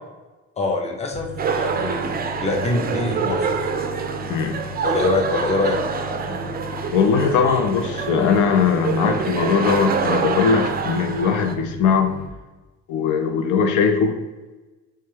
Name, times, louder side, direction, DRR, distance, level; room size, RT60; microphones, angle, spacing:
voice 1, 0.6-2.0 2.4-3.7 4.8-5.8, left 2 dB, 20° left, 2 dB, 0.6 m, -24 dB
sound 1, 1.1-12.3, left 3 dB, 55° left, 1.2 m, -36 dB
sound 2, 1.4-11.5, right 6 dB, 30° right, 0.4 m, -26 dB
voice 2, 6.9-12.1 12.9-14.2, left 6 dB, 85° left, 6 dB, 0.5 m, -20 dB
3.2 x 3.2 x 3.3 m, 1.2 s
cardioid pair, 90°, 30 cm